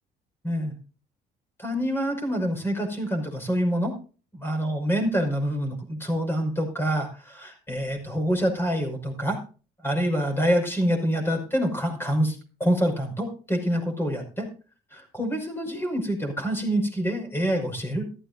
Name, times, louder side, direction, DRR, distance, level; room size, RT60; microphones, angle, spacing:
voice 1, 1.6-3.9 4.4-9.4 9.8-14.5 14.9-18.1, equal, 15° left, 4 dB, 5.6 m, -26 dB
14.0 x 14.0 x 2.7 m, 0.37 s
cardioid pair, 110°, 17 cm